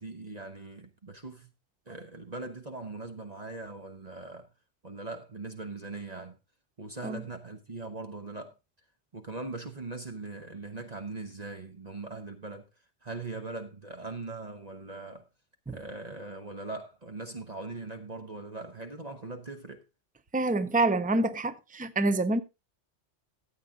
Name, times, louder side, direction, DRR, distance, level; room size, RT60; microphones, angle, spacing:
voice 1, 0.0-1.5 1.9-4.5 4.8-6.4 6.8-8.5 9.1-12.7 13.0-15.2 15.7-19.8, right 3 dB, 35° right, 1.3 m, -40 dB
voice 2, 20.3-22.4, right 2 dB, 10° right, 0.6 m, -27 dB
14.0 x 8.2 x 3.7 m
omnidirectional pair, 1.2 m